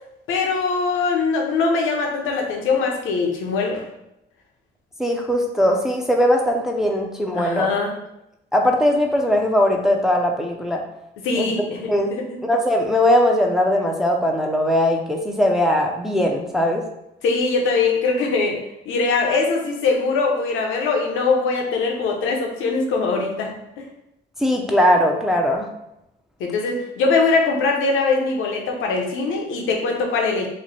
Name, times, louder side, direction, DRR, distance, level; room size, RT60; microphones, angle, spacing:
voice 1, 0.3-3.8 7.3-7.9 11.2-12.4 17.2-18.6 18.9-23.6 26.4-30.5, left 4 dB, 85° left, 1 dB, 0.8 m, -22 dB
voice 2, 5.0-7.7 8.5-10.8 11.3-11.5 11.9-12.1 12.4-16.8 24.4-25.7, left 1 dB, ahead, 0 dB, 0.5 m, -19 dB
3.1 x 2.1 x 4.0 m, 0.85 s
cardioid pair, 90°, 20 cm